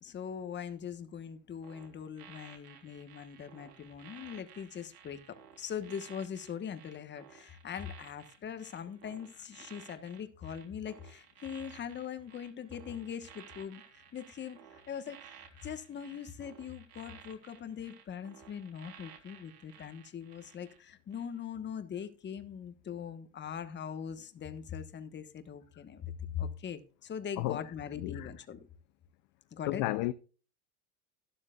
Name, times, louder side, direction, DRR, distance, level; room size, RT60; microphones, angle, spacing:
voice 1, 0.0-15.3 15.6-28.6 29.5-29.8, left 8 dB, 20° left, 1.2 m, -41 dB
sound 1, 1.6-20.8 21.1-21.4, right 9 dB, 75° right, 3.6 m, -55 dB
voice 2, 27.4-27.7 28.0-28.3 29.7-30.1, left 17 dB, 45° left, 0.6 m, -33 dB
12.5 x 11.5 x 2.4 m
supercardioid pair, 120°, 48 cm